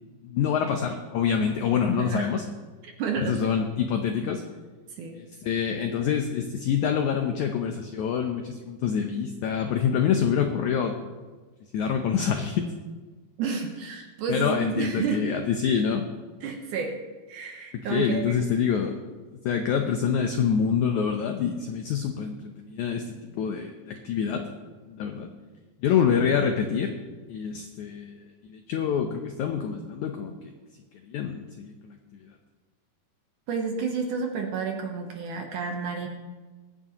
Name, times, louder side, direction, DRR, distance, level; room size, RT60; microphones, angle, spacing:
voice 1, 0.2-2.4 3.2-4.4 5.1-11.0 11.7-12.7 14.3-16.1 17.7-19.0 19.4-24.4 24.9-25.3 25.8-27.0 27.3-28.2 28.5-30.5 31.0-32.2, left 7 dB, 90° left, 4 dB, 1.6 m, -26 dB
voice 2, 2.0-2.3 2.8-3.5 5.0-5.2 13.4-15.2 16.4-17.0 17.3-18.5 33.5-36.1, right 5 dB, 70° right, 3 dB, 2.2 m, -30 dB
22.5 x 9.6 x 3.0 m, 1.3 s
omnidirectional pair, 4.5 m